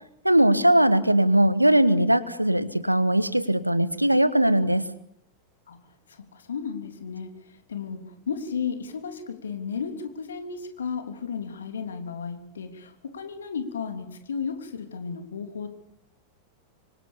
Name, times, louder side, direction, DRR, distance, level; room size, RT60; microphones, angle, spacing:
voice 1, 0.2-4.8, right 1 dB, 90° right, 15 dB, 1.4 m, -20 dB
voice 2, 6.1-7.3 7.7-15.8, left 6 dB, 70° left, 7 dB, 3.3 m, -34 dB
25.5 x 25.0 x 7.1 m, 0.73 s
figure-of-eight pair, 90°, 0 cm